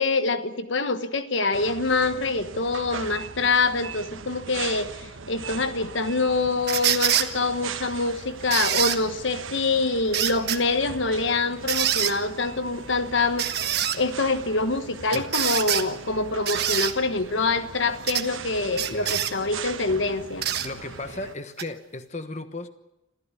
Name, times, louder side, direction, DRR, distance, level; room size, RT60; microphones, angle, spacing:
voice 1, 0.0-20.4, left 3 dB, 65° left, 11 dB, 1.3 m, -25 dB
sound 1, 1.5-21.3, right 5 dB, 80° right, 1.1 m, -40 dB
sound 2, 6.7-7.3 8.5-9.0 10.1-10.6 11.7-12.1 13.4-14.0 15.1-15.9 16.5-16.9 18.1-18.3 18.8-19.3 20.4-20.7 21.6-21.7, right 10 dB, 50° right, 1.4 m, -25 dB
voice 2, 18.9-19.2 20.6-22.7, left 2 dB, 35° left, 9 dB, 1.2 m, -35 dB
26.5 x 15.0 x 9.8 m, 0.93 s
head